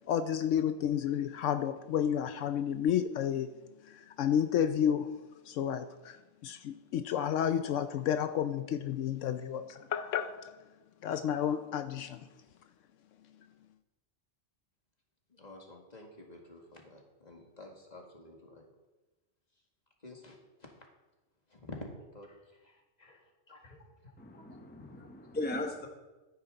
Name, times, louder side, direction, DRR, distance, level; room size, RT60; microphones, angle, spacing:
voice 1, 0.0-3.5 3.9-5.2 5.4-10.6 11.0-12.3, left 9 dB, 80° left, 10 dB, 0.9 m, -31 dB
voice 2, 15.3-18.7 20.0-20.7 21.5-25.1, left 2 dB, 35° left, 0 dB, 2.0 m, -51 dB
voice 3, 24.2-25.9, left 2 dB, 10° left, 3 dB, 0.9 m, -38 dB
13.0 x 9.8 x 3.9 m, 1.1 s
omnidirectional pair, 1.3 m